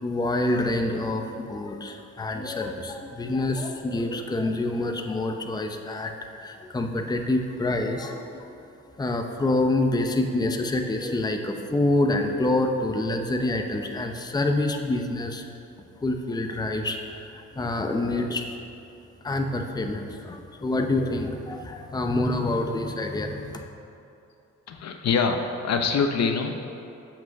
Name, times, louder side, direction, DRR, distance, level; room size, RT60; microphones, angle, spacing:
voice 1, 0.0-8.5 9.0-15.4 16.0-18.6 19.2-23.6, left 2 dB, 15° left, 4 dB, 0.7 m, -27 dB
voice 2, 24.7-26.7, left 5 dB, 60° left, 5 dB, 0.8 m, -25 dB
7.6 x 6.0 x 6.5 m, 2.7 s
cardioid pair, 90°, 30 cm